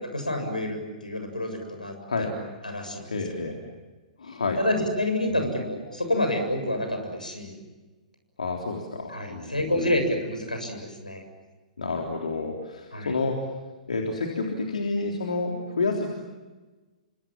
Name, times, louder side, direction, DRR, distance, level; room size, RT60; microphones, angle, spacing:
voice 1, 0.0-2.4 2.6-3.1 3.4-3.5 4.6-7.6 9.1-11.2 12.9-13.1, left 1 dB, 85° left, 5 dB, 7.3 m, -28 dB
voice 2, 3.0-3.6 4.2-4.6 5.3-5.5 8.4-9.9 11.8-13.4 13.9-16.1, left 3 dB, 70° left, 1 dB, 3.6 m, -29 dB
30.0 x 25.5 x 7.5 m, 1.2 s
figure-of-eight pair, 115°, 4 cm